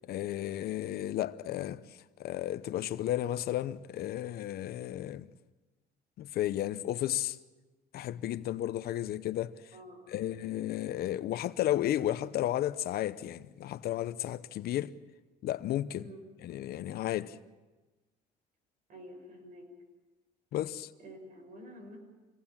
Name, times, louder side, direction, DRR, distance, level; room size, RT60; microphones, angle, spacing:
voice 1, 0.1-5.3 6.2-7.4 7.9-9.6 10.1-14.9 15.4-16.1 16.4-17.4 20.5-20.9, left 13 dB, 70° left, 0.8 m, -33 dB
voice 2, 9.7-10.3 16.0-16.2 18.9-19.7 21.0-22.0, equal, 55° right, 6.0 m, -49 dB
25.5 x 18.0 x 7.3 m
cardioid pair, 110°, 17 cm